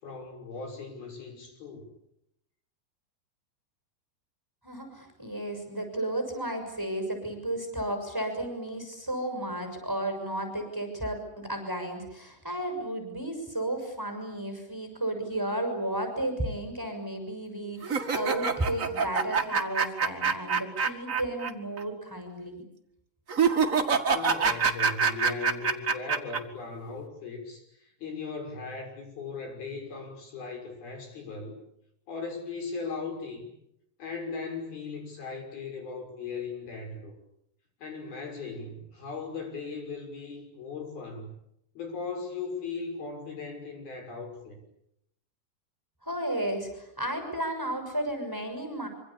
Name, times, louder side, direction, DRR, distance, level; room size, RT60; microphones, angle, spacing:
voice 1, 0.0-1.9 24.0-31.6 32.1-33.5 34.0-37.1 37.8-41.3 41.8-44.6, left 4 dB, 60° left, 4 dB, 7.8 m, -38 dB
voice 2, 4.6-22.6 46.0-48.9, right 1 dB, 5° right, 5 dB, 6.1 m, -33 dB
sound 1, 17.8-21.5 21.8-21.9 23.3-26.4, right 5 dB, 65° right, 0.8 m, -26 dB
26.0 x 26.0 x 8.6 m, 0.78 s
omnidirectional pair, 4.9 m